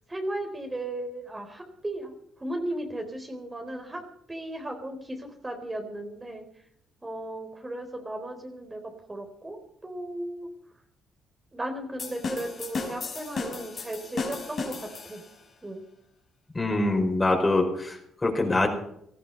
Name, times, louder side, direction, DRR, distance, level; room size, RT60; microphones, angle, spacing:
voice 1, 0.1-4.0 4.3-6.4 7.0-10.5 11.5-15.2 15.6-15.8, right 1 dB, 20° right, 4 dB, 3.8 m, -36 dB
sound 1, 12.0-15.4, left 4 dB, 50° left, 5.4 m, -34 dB
voice 2, 16.5-18.7, left 2 dB, 25° left, 3 dB, 5.2 m, -24 dB
18.5 x 14.0 x 5.6 m, 0.72 s
supercardioid pair, 70°, 0 cm